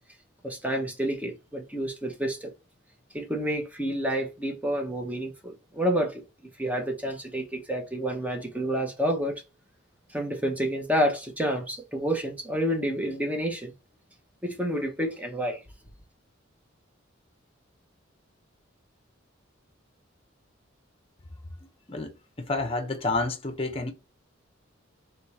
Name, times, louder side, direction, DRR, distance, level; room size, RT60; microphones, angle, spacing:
voice 1, 0.4-2.5 3.1-6.2 6.6-9.4 10.1-13.7 14.4-15.6, equal, 10° right, 1.0 m, -29 dB
voice 2, 21.9-23.9, left 2 dB, 30° left, 0.8 m, -29 dB
4.3 x 3.2 x 3.2 m
head